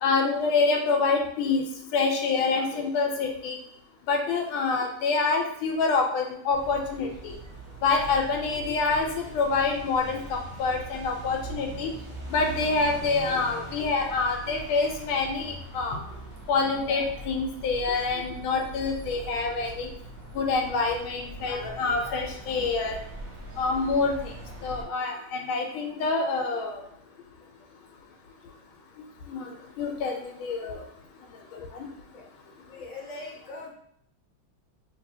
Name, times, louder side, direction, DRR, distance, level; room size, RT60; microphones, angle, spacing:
voice 1, 0.0-1.6 1.9-3.6 4.1-7.4 7.8-11.9 12.3-16.0 16.5-19.9 20.3-23.0 23.6-24.3 24.6-26.8 29.3-29.5 29.8-30.8 31.5-31.6, left 4 dB, 90° left, 3 dB, 1.4 m, -26 dB
sound 1, 6.5-24.8, right 2 dB, 60° right, 0.9 m, -41 dB
voice 2, 32.7-33.7, left 2 dB, 30° left, -4 dB, 0.7 m, -41 dB
3.3 x 3.2 x 2.7 m, 0.67 s
omnidirectional pair, 2.2 m